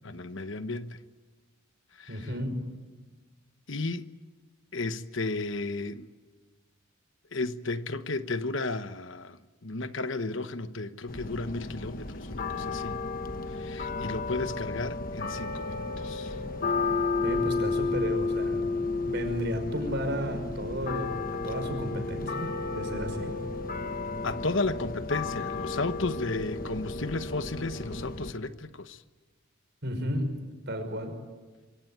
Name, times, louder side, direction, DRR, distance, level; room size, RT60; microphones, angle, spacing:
voice 1, 0.0-1.0 2.0-2.3 3.7-4.1 4.7-6.1 7.3-13.0 13.5-16.3 24.2-29.0, left 3 dB, 60° left, 1.1 m, -33 dB
voice 2, 2.1-2.5 17.2-18.7 19.0-21.2 21.4-23.3 29.8-30.3 30.7-31.1, equal, 50° right, 5.7 m, -33 dB
sound 1, 11.1-28.3, left 3 dB, 40° left, 1.2 m, -32 dB
26.0 x 24.5 x 9.3 m
head